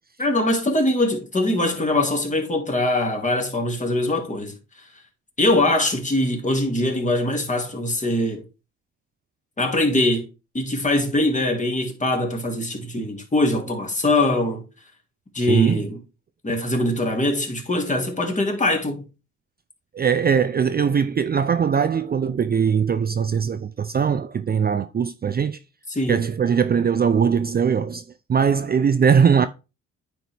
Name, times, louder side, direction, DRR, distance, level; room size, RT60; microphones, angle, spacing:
voice 1, 0.2-4.5 5.4-8.4 9.6-10.3 10.5-14.6 15.3-16.0 16.4-19.0 25.9-26.2, left 1 dB, 25° left, 2.3 m, -22 dB
voice 2, 15.5-15.9 19.9-25.6 26.1-29.5, right 7 dB, 30° right, 0.5 m, -20 dB
9.3 x 4.6 x 3.4 m
cardioid pair, 90°, 30 cm